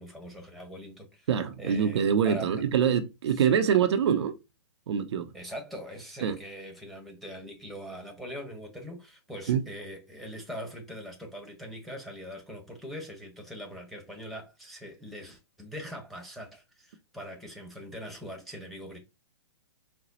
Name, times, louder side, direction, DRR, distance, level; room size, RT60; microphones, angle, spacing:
voice 1, 0.0-1.3 1.6-2.7 3.3-3.6 5.3-19.0, equal, ahead, 1.3 m, -42 dB
voice 2, 1.3-4.3 4.9-5.3 6.2-6.4 9.5-9.6, right 8 dB, 70° right, 0.7 m, -25 dB
4.2 x 2.2 x 4.0 m
hypercardioid pair, 130°, 15 cm